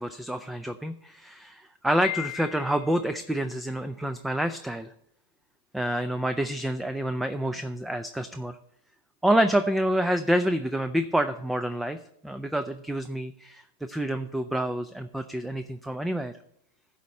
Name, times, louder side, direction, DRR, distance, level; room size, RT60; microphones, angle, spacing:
voice 1, 0.0-4.9 5.7-8.6 9.2-12.0 12.2-16.3, right 1 dB, 5° right, 9 dB, 0.4 m, -28 dB
Piano, 2.0-3.1, left 16 dB, 80° left, 0.5 m, -36 dB
11.5 x 4.2 x 6.5 m, 0.74 s
hypercardioid pair, 125°, 0 cm